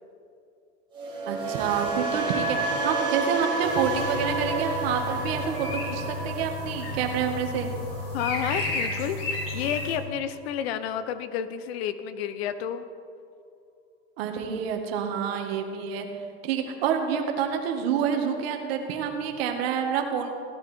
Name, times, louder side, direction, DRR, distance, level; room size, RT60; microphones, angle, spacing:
sound 1, 0.9-9.0 9.3-9.7, right 3 dB, 15° right, 3.3 m, -31 dB
voice 1, 1.3-7.7 14.2-16.1 16.4-20.3, right 7 dB, 60° right, 4 dB, 2.0 m, -28 dB
sound 2, 3.6-10.0, left 2 dB, 50° left, 3.5 m, -33 dB
voice 2, 8.1-9.2 9.5-12.9 14.5-14.7, left 9 dB, 65° left, 12 dB, 1.0 m, -31 dB
16.5 x 11.0 x 4.5 m, 2.4 s
supercardioid pair, 160°, 34 cm